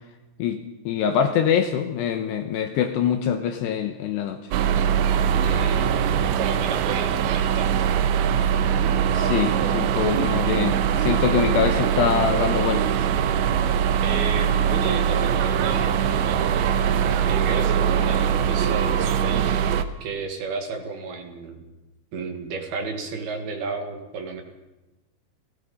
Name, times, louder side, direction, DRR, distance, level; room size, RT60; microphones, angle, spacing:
voice 1, 0.4-4.5 9.1-13.1, left 8 dB, 75° left, 7 dB, 2.8 m, -24 dB
sound 1, 4.5-19.8, right 8 dB, 75° right, 3.0 m, -22 dB
voice 2, 5.3-7.9 14.0-16.8 17.3-19.5 20.0-21.6 22.1-24.4, right 4 dB, 60° right, 4 dB, 3.4 m, -32 dB
30.0 x 18.0 x 5.5 m, 1.0 s
omnidirectional pair, 5.6 m